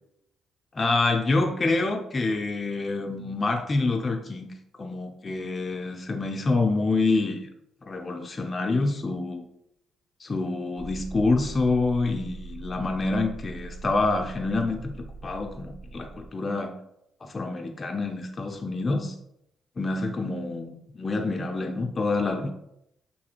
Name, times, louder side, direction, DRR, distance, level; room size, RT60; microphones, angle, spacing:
voice 1, 0.7-4.5 4.8-7.4 7.9-9.5 10.2-16.8 17.2-19.1 19.8-22.5, left 3 dB, 30° left, 3 dB, 0.3 m, -27 dB
sound 1, 10.8-16.3, right 3 dB, ahead, 0.6 m, -41 dB
2.6 x 2.4 x 2.8 m, 0.79 s
cardioid pair, 90°, 0 cm